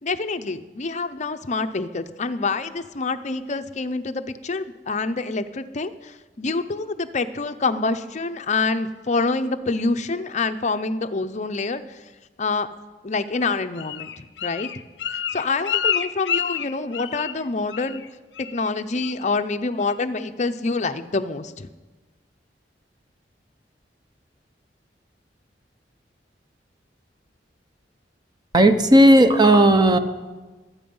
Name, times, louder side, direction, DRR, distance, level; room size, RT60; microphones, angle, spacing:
voice 1, 0.0-12.0 12.4-12.7 13.0-14.7 15.1-18.0 18.4-21.7, left 3 dB, 40° left, 9 dB, 0.6 m, -26 dB
Bird, 13.3-17.4 17.7-18.1 18.3-18.7 19.0-19.4 19.8-19.9, left 9 dB, 80° left, 0.7 m, -28 dB
voice 2, 28.5-30.0, right 1 dB, 25° right, 9 dB, 0.8 m, -14 dB
23.5 x 8.6 x 5.5 m, 1.2 s
head